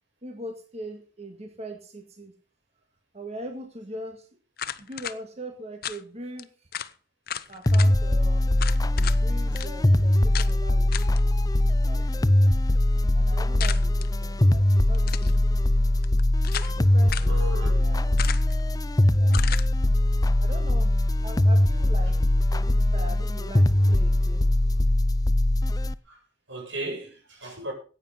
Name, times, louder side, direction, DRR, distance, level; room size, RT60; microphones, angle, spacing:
voice 1, 0.2-2.3 3.1-4.3 4.8-6.7 7.5-8.5 8.9-12.5 13.1-15.6 16.7-18.2 19.0-19.4 20.4-20.9 21.2-22.2 22.5-24.5, right 1 dB, 35° right, 1.9 m, -41 dB
sound 1, 4.6-5.2 5.8-6.0 6.4-6.5 6.7-6.9 7.3-7.9 8.6-9.2 9.6-9.7 10.3-10.5 10.9-11.2 13.6-14.1 14.9-15.4 16.0-16.8 17.1-17.3 18.2-18.6 19.3-19.7, left 9 dB, 55° left, 0.8 m, -34 dB
sound 2, 7.7-25.9, left 1 dB, 20° left, 0.5 m, -21 dB
voice 2, 17.2-17.7 26.0-27.7, right 1 dB, 85° right, 7.2 m, -36 dB
15.0 x 9.1 x 5.7 m
head